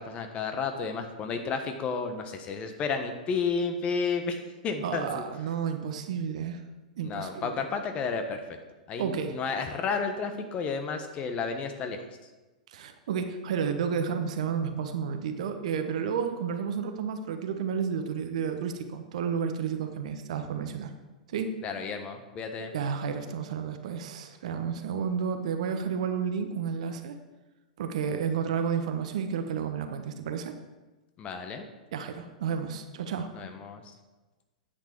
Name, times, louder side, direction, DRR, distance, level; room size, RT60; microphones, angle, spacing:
voice 1, 0.0-5.2 7.0-8.4 8.9-12.0 21.6-22.7 31.2-31.6 33.3-33.9, left 5 dB, 30° left, 6 dB, 1.2 m, -32 dB
voice 2, 4.8-6.6 7.0-7.5 9.0-9.4 12.7-20.9 21.3-21.5 22.7-27.2 27.8-30.5 31.9-33.3, right 7 dB, 60° right, 7 dB, 1.1 m, -31 dB
10.0 x 8.4 x 4.6 m, 1.2 s
figure-of-eight pair, 100°, 4 cm